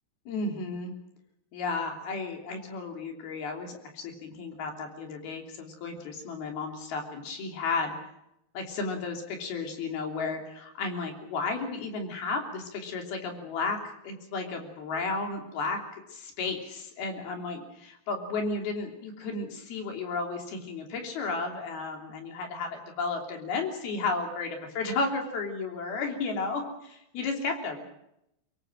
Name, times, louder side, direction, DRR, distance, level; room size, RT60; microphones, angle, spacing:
voice 1, 0.3-0.9 1.5-8.0 8.5-13.8 14.0-15.8 16.1-27.9, left 3 dB, 75° left, 3 dB, 5.0 m, -33 dB
24.0 x 22.5 x 6.2 m, 0.80 s
omnidirectional pair, 4.5 m